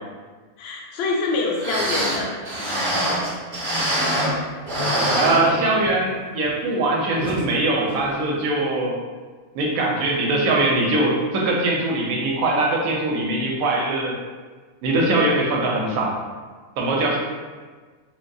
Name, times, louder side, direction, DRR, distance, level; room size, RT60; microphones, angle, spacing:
voice 1, 0.6-2.3, left 3 dB, 65° left, -1 dB, 0.6 m, -25 dB
sound 1, 1.3-1.4 1.6-4.4 4.7-6.0 6.4-6.5 7.2-7.4 7.9-8.0, equal, 30° right, 0.6 m, -24 dB
voice 2, 5.2-9.0 9.5-14.2 14.8-16.2 16.8-17.2, right 2 dB, 75° right, -2 dB, 1.0 m, -22 dB
3.7 x 2.2 x 2.6 m, 1.4 s
omnidirectional pair, 1.6 m